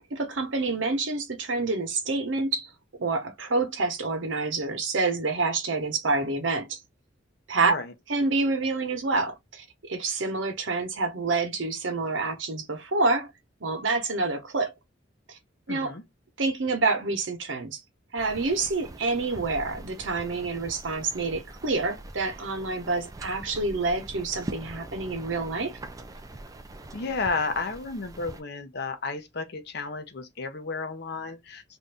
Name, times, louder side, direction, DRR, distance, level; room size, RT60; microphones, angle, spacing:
voice 1, 0.1-2.7 3.0-6.8 7.5-7.7 8.1-13.3 13.6-14.7 15.3-15.4 15.7-15.9 16.4-17.8 18.1-25.7, right 3 dB, 75° right, 0.9 m, -27 dB
voice 2, 7.6-7.9 15.7-16.0 26.9-31.8, left 3 dB, 60° left, 0.7 m, -32 dB
sound 1, 18.2-28.4, right 2 dB, 20° right, 0.4 m, -43 dB
2.6 x 2.5 x 3.4 m
head